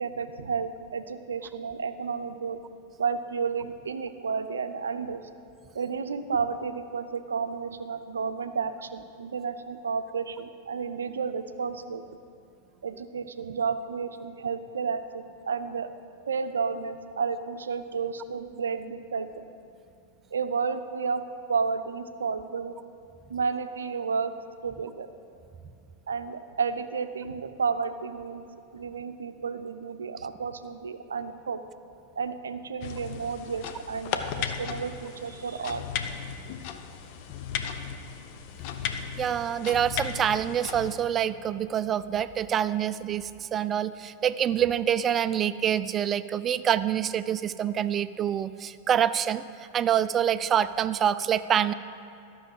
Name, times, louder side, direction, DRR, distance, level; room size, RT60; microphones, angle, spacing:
voice 1, 0.0-2.6 3.0-5.3 5.7-12.0 12.8-15.9 16.3-19.5 20.3-22.7 23.3-24.3 24.6-25.1 26.1-28.4 28.7-31.6 32.2-35.8, right 5 dB, 70° right, 9 dB, 0.6 m, -32 dB
sound 1, 32.8-40.9, left 7 dB, 45° left, 0.7 m, -36 dB
voice 2, 38.9-51.7, right 9 dB, 25° right, 15 dB, 0.4 m, -26 dB
13.0 x 6.3 x 7.5 m, 2.7 s
figure-of-eight pair, 90°, 0 cm